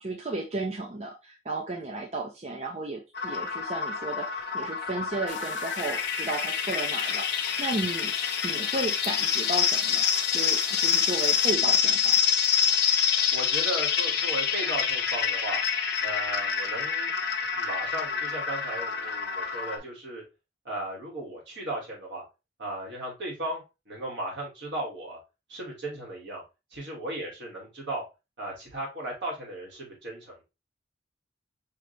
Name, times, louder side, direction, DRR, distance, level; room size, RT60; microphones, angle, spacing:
voice 1, 0.0-10.0 10.3-12.1, right 2 dB, 35° right, 0 dB, 0.6 m, -34 dB
sound 1, 3.1-19.8, left 7 dB, 60° left, 0.8 m, -27 dB
sound 2, 5.3-11.5, left 8 dB, 90° left, 0.5 m, -41 dB
voice 2, 13.3-15.6 16.0-17.1 17.5-20.2 20.6-22.2 22.6-25.2 25.5-26.4 26.7-28.0 28.4-30.4, right 1 dB, 75° right, -3 dB, 2.2 m, -36 dB
5.0 x 2.9 x 3.2 m, 0.27 s
head